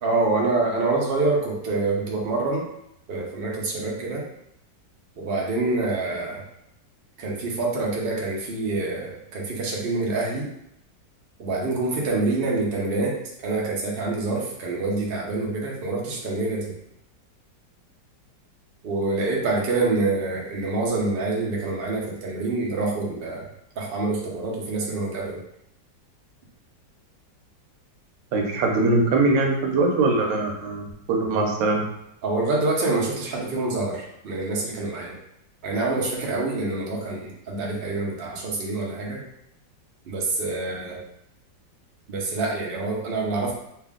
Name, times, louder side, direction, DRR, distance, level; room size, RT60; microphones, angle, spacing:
voice 1, 0.0-2.7 3.1-4.2 5.2-6.4 7.2-10.5 11.4-13.2 13.4-16.7 18.8-23.5 23.8-25.4 31.3-31.5 32.2-35.2 35.6-39.2 40.1-41.0 42.1-43.5, right 3 dB, 50° right, -2 dB, 0.6 m, -26 dB
voice 2, 28.3-31.8, right 3 dB, 85° right, 2 dB, 1.4 m, -22 dB
3.3 x 2.4 x 3.5 m, 0.78 s
omnidirectional pair, 2.0 m